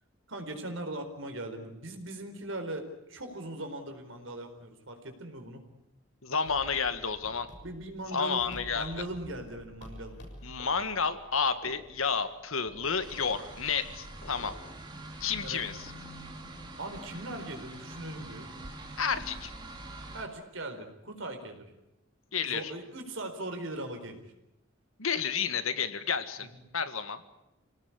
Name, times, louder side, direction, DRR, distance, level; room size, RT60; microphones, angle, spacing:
voice 1, 0.3-5.6 7.6-10.2 15.4-15.6 16.8-18.5 20.1-21.6 22.4-24.2 26.4-26.6, right 1 dB, 70° right, 6 dB, 4.3 m, -40 dB
voice 2, 6.2-7.5 8.1-8.9 10.4-14.6 15.2-15.9 19.0-19.5 22.3-22.7 25.0-26.5 26.7-27.2, left 6 dB, 85° left, 11 dB, 1.8 m, -31 dB
sound 1, 6.5-14.7, left 1 dB, 55° left, 6.7 m, -50 dB
sound 2, 13.0-20.3, right 1 dB, 20° right, 3.1 m, -45 dB
27.0 x 18.5 x 9.8 m, 0.90 s
head